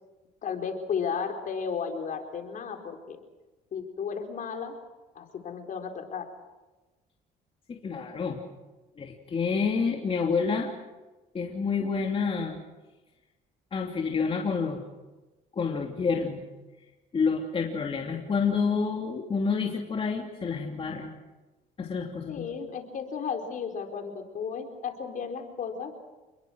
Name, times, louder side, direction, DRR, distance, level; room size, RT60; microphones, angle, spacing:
voice 1, 0.4-3.2 3.7-4.8 5.1-6.3 22.3-26.0, left 6 dB, 50° left, 4 dB, 4.5 m, -34 dB
voice 2, 7.7-8.4 9.0-10.7 11.3-12.6 13.7-14.9 15.5-16.4 17.1-21.1 21.8-22.5, left 5 dB, 35° left, 0 dB, 3.0 m, -28 dB
28.5 x 21.5 x 6.4 m, 1.2 s
cardioid pair, 110°, 17 cm